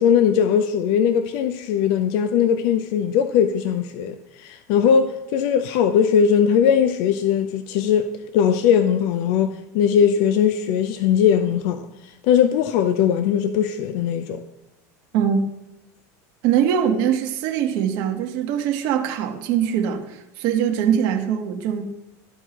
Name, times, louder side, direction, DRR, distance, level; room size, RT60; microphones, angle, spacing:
voice 1, 0.0-11.9 12.2-14.4, left 8 dB, 65° left, 0.5 m, -19 dB
voice 2, 16.4-21.8, right 8 dB, 60° right, 1.1 m, -22 dB
13.0 x 4.6 x 2.9 m
supercardioid pair, 120°, 8 cm